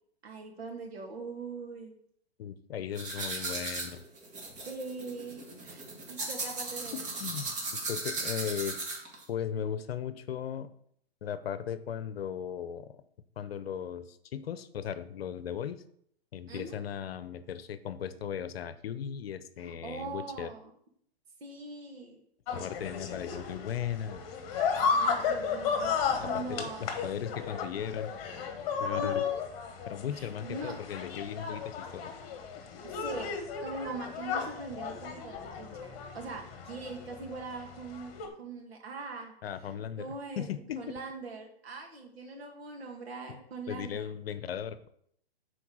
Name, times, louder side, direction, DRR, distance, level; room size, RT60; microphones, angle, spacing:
voice 1, 0.2-2.0 4.6-7.0 16.5-16.8 19.6-20.7 21.4-22.2 24.9-27.0 28.9-29.5 30.1-30.7 33.0-33.3 33.6-39.3 39.7-40.5 40.8-44.1, right 3 dB, 70° right, 1 dB, 2.4 m, -42 dB
voice 2, 2.4-4.0 6.9-7.5 7.9-8.8 9.3-10.7 11.2-13.0 13.4-15.8 16.3-20.5 22.5-24.2 26.2-28.1 28.8-29.2 29.9-32.1 32.5-32.8 39.4-40.9 43.3-43.4 43.7-44.9, left 9 dB, 65° left, 13 dB, 0.8 m, -37 dB
sound 1, 3.0-9.2, right 3 dB, 25° right, 1.7 m, -37 dB
sound 2, 22.5-38.3, left 6 dB, 35° left, 1.4 m, -34 dB
7.0 x 4.4 x 6.2 m, 0.68 s
hypercardioid pair, 135°, 32 cm